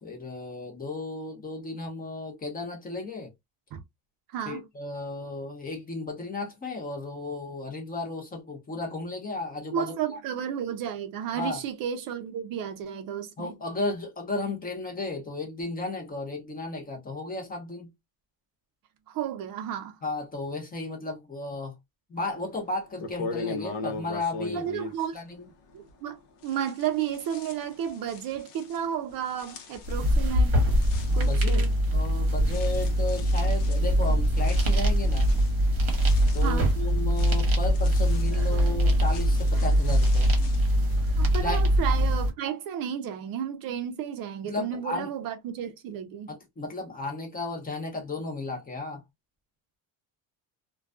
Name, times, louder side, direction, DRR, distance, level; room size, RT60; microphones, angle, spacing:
voice 1, 0.0-3.3 4.5-10.2 11.3-11.6 13.4-17.9 20.0-21.7 22.1-24.7 25.1-25.5 31.1-31.7 31.9-35.3 36.3-40.3 41.4-41.6 44.4-45.1 46.3-49.0, left 2 dB, 20° left, 0.7 m, -34 dB
voice 2, 4.3-4.7 9.7-13.6 19.1-20.0 24.5-25.2 25.7-30.6 31.1-31.7 36.4-36.7 38.5-38.6 41.2-46.3, right 9 dB, 55° right, 0.5 m, -32 dB
sound 1, 22.4-22.5 23.0-26.1 26.4-41.2, left 4 dB, 75° left, 0.7 m, -42 dB
sound 2, 29.8-42.3, equal, 30° right, 0.9 m, -23 dB
2.3 x 2.2 x 2.4 m
cardioid pair, 150°, 43 cm